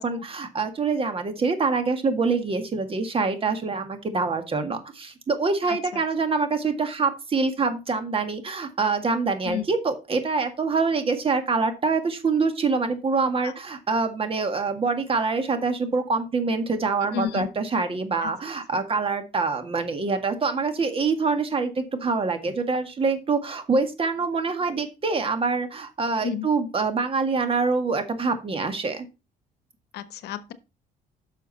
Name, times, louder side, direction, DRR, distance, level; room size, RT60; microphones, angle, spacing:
voice 1, 0.0-29.1, right 4 dB, 35° right, 1.9 m, -25 dB
voice 2, 17.1-17.5 18.2-18.3 26.2-26.5 29.9-30.5, left 9 dB, 75° left, 1.0 m, -30 dB
10.0 x 6.4 x 4.1 m
cardioid pair, 110°, 17 cm